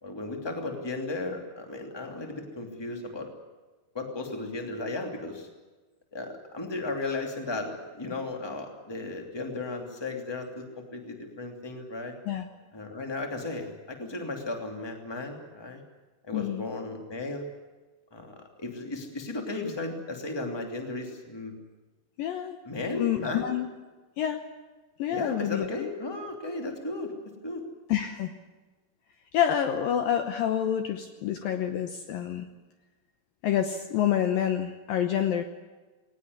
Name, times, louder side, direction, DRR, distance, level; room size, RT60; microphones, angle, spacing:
voice 1, 0.0-3.3 3.9-5.5 6.1-12.1 12.7-15.8 16.3-17.4 18.1-21.5 22.6-23.5 25.1-27.1 27.4-27.6, left 2 dB, 10° left, 3 dB, 1.4 m, -35 dB
voice 2, 16.3-16.7 22.2-22.6 22.9-23.7 24.2-24.4 25.0-25.7 27.9-28.3 29.3-32.5 33.4-35.4, left 10 dB, 85° left, 7 dB, 2.0 m, -27 dB
20.0 x 19.5 x 9.7 m, 1.2 s
omnidirectional pair, 5.6 m